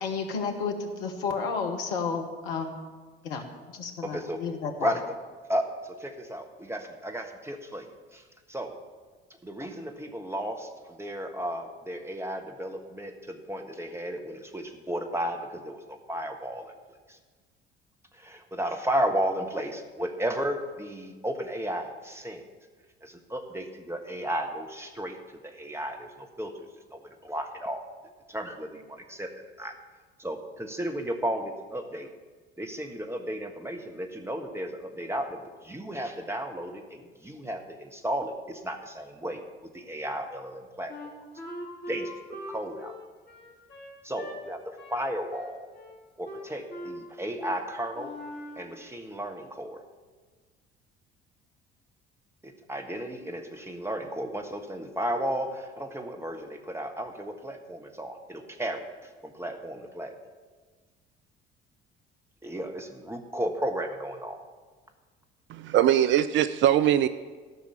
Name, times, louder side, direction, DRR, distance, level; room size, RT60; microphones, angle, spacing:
voice 1, 0.0-2.8 3.2-4.9, left 5 dB, 65° left, 4 dB, 1.3 m, -32 dB
voice 2, 4.0-4.4 4.8-5.0 5.5-7.9 8.1-8.7 9.4-16.7 17.1-17.2 18.1-22.4 23.0-25.2 25.4-27.8 28.3-29.3 29.6-29.7 30.2-32.1 32.6-39.4 39.7-40.9 41.9-42.9 44.0-44.6 44.9-45.7 46.2-48.1 48.6-49.8 52.4-58.8 59.2-60.1 62.4-64.4, right 1 dB, 10° right, 4 dB, 1.4 m, -34 dB
Wind instrument woodwind instrument, 40.9-44.4 44.8-45.0 45.3-46.0 46.2-47.0 47.4-47.6 47.9-48.7, equal, 35° left, 3.8 m, -41 dB
voice 3, 65.5-67.1, right 11 dB, 40° right, 13 dB, 0.4 m, -21 dB
13.5 x 5.9 x 6.9 m, 1.4 s
figure-of-eight pair, 55°, 30 cm